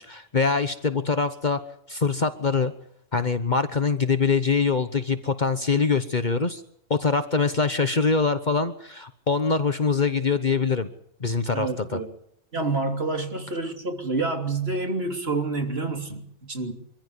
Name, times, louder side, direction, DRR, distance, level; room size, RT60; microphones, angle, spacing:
voice 1, 0.0-1.6 1.9-2.7 3.1-6.6 6.9-10.9 11.2-12.0, left 4 dB, 40° left, 10 dB, 1.2 m, -24 dB
voice 2, 11.5-12.1 12.5-16.7, right 3 dB, 50° right, 4 dB, 3.4 m, -28 dB
24.5 x 15.0 x 9.7 m, 0.72 s
omnidirectional pair, 1.3 m